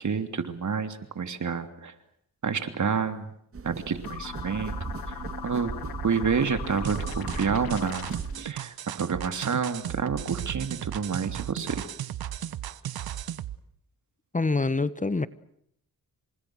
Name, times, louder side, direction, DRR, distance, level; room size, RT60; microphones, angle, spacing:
voice 1, 0.0-1.9 2.4-3.3 3.6-4.7 5.1-5.8 6.0-11.8, right 6 dB, 55° right, 9 dB, 3.2 m, -29 dB
sound 1, 3.5-8.5, right 4 dB, 40° right, 1.9 m, -37 dB
sound 2, 4.0-8.4, left 9 dB, 80° left, 2.1 m, -39 dB
sound 3, 6.8-13.6, right 11 dB, 85° right, 1.2 m, -35 dB
voice 2, 14.3-15.3, left 3 dB, 20° left, 15 dB, 1.3 m, -25 dB
29.0 x 26.5 x 6.4 m, 0.71 s
cardioid pair, 75°, 36 cm